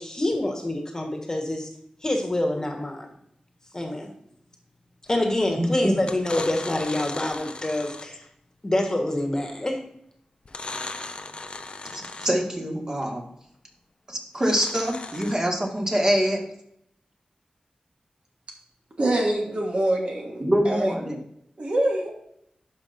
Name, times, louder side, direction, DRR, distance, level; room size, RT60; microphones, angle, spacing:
voice 1, 0.0-1.7 2.0-3.1 3.7-4.1 5.1-8.2 8.6-9.8, left 1 dB, 25° left, 3 dB, 1.4 m, -26 dB
sound 1, 5.1-5.5 6.0-8.2 10.4-12.5 14.3-15.3, left 3 dB, 45° left, 0.6 m, -37 dB
voice 2, 5.6-6.0 11.9-13.2 14.1-16.4 20.4-21.2, equal, 25° right, 0 dB, 1.8 m, -24 dB
voice 3, 19.0-20.9 21.6-22.1, right 1 dB, 55° right, 0 dB, 1.5 m, -25 dB
11.5 x 5.2 x 2.7 m, 0.73 s
wide cardioid pair, 85°, 2 cm